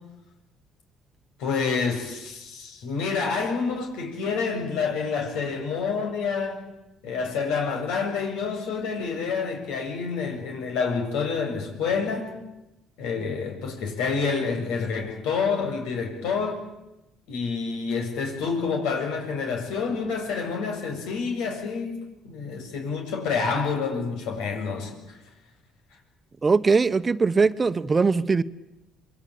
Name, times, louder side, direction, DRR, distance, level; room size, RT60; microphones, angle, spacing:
voice 1, 1.4-6.6 7.0-12.4 13.0-16.6 17.3-25.2, left 5 dB, 90° left, 7.3 m, -28 dB
voice 2, 26.4-28.4, right 4 dB, 25° right, 1.0 m, -21 dB
28.0 x 22.0 x 8.7 m
cardioid pair, 95°, 0 cm